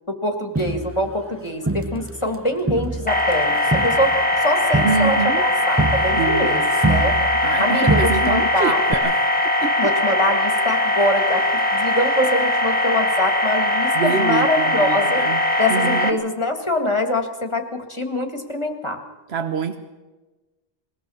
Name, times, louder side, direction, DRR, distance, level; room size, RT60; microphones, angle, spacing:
voice 1, 0.1-6.6 6.9-7.1 7.6-8.8 9.8-15.2 15.6-19.0, left 1 dB, 30° left, 4 dB, 2.0 m, -24 dB
Crowd, 0.6-2.4 2.7-7.6 7.9-8.5 8.9-9.0, right 2 dB, 15° right, 0.5 m, -25 dB
sound 1, 3.1-16.1, left 1 dB, 10° left, 1.4 m, -20 dB
voice 2, 4.8-5.5 6.2-9.2 9.6-9.8 13.9-15.4 15.7-16.2 19.3-19.8, right 6 dB, 80° right, 7 dB, 1.3 m, -26 dB
21.0 x 18.0 x 7.0 m, 1.2 s
omnidirectional pair, 1.0 m